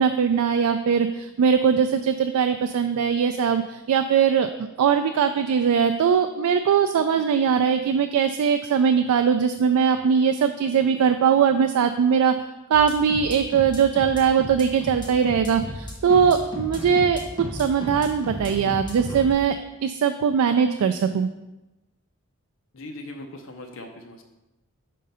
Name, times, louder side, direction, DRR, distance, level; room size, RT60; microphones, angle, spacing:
voice 1, 0.0-12.3 12.7-17.2 17.5-19.5 19.8-21.3, right 7 dB, 85° right, 7 dB, 0.3 m, -21 dB
sound 1, 12.7-19.3, left 1 dB, 20° left, 1.1 m, -35 dB
voice 2, 22.7-24.2, left 1 dB, 60° left, 3 dB, 0.6 m, -40 dB
5.1 x 3.8 x 5.4 m, 1.0 s
head